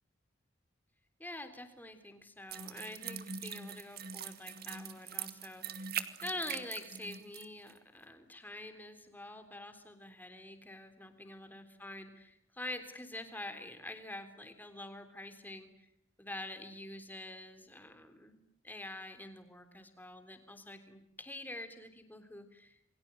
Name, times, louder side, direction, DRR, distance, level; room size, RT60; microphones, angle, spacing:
voice 1, 1.2-15.9 16.2-22.9, left 1 dB, 10° left, 8 dB, 3.4 m, -46 dB
sound 1, 2.5-7.4 7.7-7.8, right 8 dB, 50° right, 2.1 m, -42 dB
29.0 x 23.0 x 9.1 m, 0.78 s
head